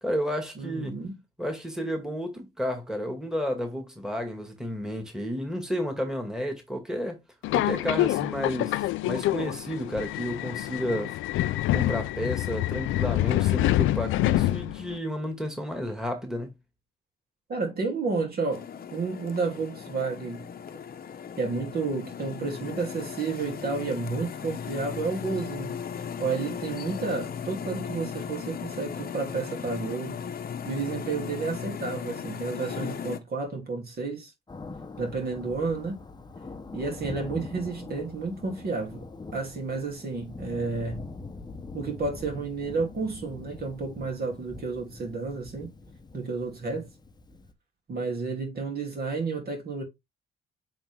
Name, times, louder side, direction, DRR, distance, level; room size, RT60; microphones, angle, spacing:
voice 1, 0.0-1.0 1.4-7.2 7.5-11.2 11.7-16.5, equal, 5° right, 2.1 m, -32 dB
voice 2, 0.5-1.2 17.5-20.5 21.4-25.8 26.2-30.2 30.6-34.3 35.0-36.0 36.7-41.1 41.7-45.7 46.1-46.9 47.9-49.8, right 4 dB, 50° right, 2.9 m, -31 dB
Subway metro underground, 7.4-15.0, left 15 dB, 85° left, 0.5 m, -26 dB
sound 1, 18.5-33.2, left 7 dB, 50° left, 0.9 m, -37 dB
Thunder, 34.5-47.5, left 3 dB, 20° left, 0.9 m, -43 dB
7.9 x 3.5 x 3.5 m
cardioid pair, 90°, 20 cm